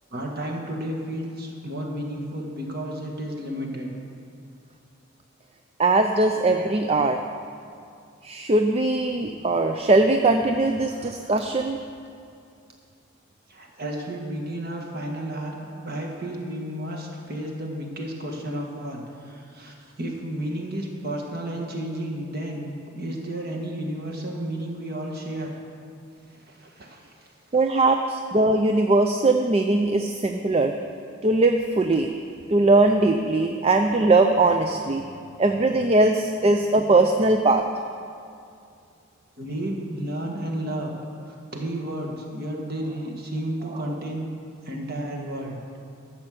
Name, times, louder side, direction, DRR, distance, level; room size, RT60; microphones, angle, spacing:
voice 1, 0.1-3.9 13.5-25.5 26.2-27.3 39.4-40.9 41.3-44.3 44.6-45.6, right 1 dB, 45° right, 0 dB, 1.7 m, -32 dB
voice 2, 5.8-7.2 8.2-11.8 27.5-30.7 31.2-32.1 32.5-35.1 35.4-37.6, right 2 dB, 30° right, 5 dB, 0.4 m, -20 dB
13.0 x 6.4 x 7.7 m, 2.4 s
head